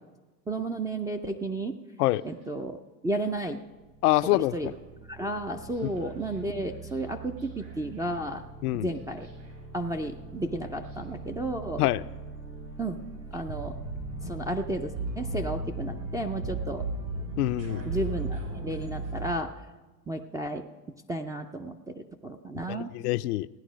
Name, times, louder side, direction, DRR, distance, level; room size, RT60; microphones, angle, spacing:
voice 1, 0.5-1.8 2.2-3.6 4.2-4.7 5.1-8.4 8.7-9.3 9.7-11.8 12.8-13.0 13.3-13.8 14.2-16.8 17.9-19.6 20.1-20.7 21.1-22.9, right 1 dB, 10° right, 0.3 m, -33 dB
sound 1, 2.0-2.4 3.1-3.4 3.7-19.3, right 2 dB, 90° right, 5.3 m, -38 dB
voice 2, 4.0-4.7 8.6-8.9 11.8-12.0 17.4-17.8 22.7-23.5, left 17 dB, 70° left, 0.5 m, -25 dB
16.0 x 9.8 x 5.1 m
hypercardioid pair, 95°, 49 cm